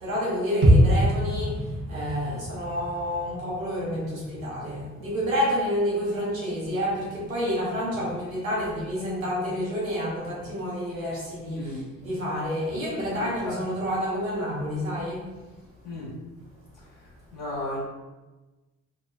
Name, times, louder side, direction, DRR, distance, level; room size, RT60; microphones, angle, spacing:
voice 1, 0.0-1.6 1.9-15.3, equal, 90° right, -6 dB, 0.6 m, -29 dB
sound 1, 0.6-4.6 4.9-5.0, equal, 30° right, 0.6 m, -24 dB
voice 2, 13.0-13.6 15.8-16.1 17.3-17.8, left 2 dB, 50° left, -7 dB, 1.3 m, -35 dB
2.8 x 2.0 x 2.3 m, 1.1 s
figure-of-eight pair, 45°, 40 cm